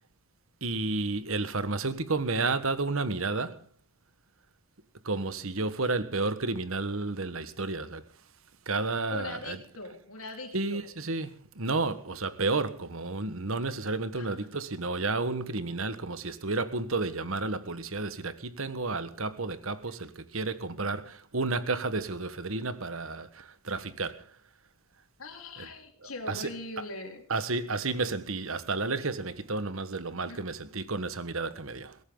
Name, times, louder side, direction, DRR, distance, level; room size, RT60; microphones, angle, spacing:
voice 1, 0.6-3.7 5.0-8.1 8.6-9.6 10.5-24.4 25.6-25.7 26.0-26.5 27.3-32.0, right 3 dB, 65° right, 1.4 m, -31 dB
voice 2, 9.1-10.8 14.1-14.5 25.2-27.2 30.3-30.4, left 2 dB, 75° left, 4.1 m, -41 dB
22.0 x 17.0 x 3.9 m
head